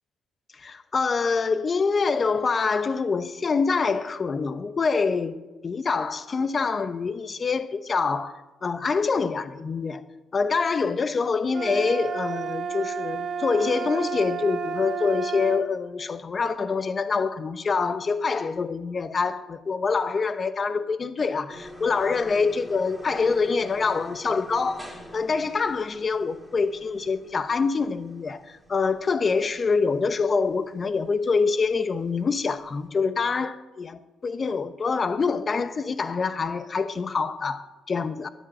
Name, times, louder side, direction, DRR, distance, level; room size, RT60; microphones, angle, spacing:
voice 1, 0.6-5.4 5.6-10.0 10.3-24.9 25.1-38.3, left 4 dB, 40° left, 0.9 m, -25 dB
sound 1, 11.5-15.7, right 6 dB, 55° right, 1.2 m, -31 dB
sound 2, 21.5-32.9, left 1 dB, 5° left, 3.1 m, -46 dB
13.0 x 10.5 x 9.8 m
cardioid pair, 90°, 0 cm